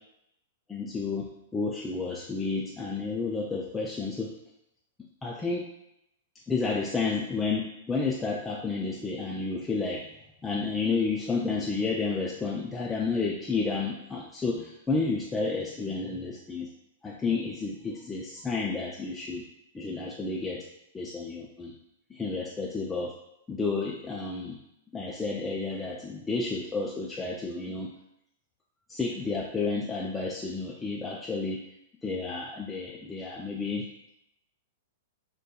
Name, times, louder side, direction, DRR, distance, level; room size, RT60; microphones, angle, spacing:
voice 1, 0.7-4.4 5.2-5.6 6.5-10.0 10.4-16.7 17.0-19.4 19.7-20.7 20.9-21.7 22.1-23.1 23.5-24.6 24.9-27.9 28.9-31.6 32.0-33.9, left 4 dB, 15° left, -3 dB, 0.3 m, -31 dB
2.7 x 2.2 x 2.3 m, 0.81 s
hypercardioid pair, 115°, 0 cm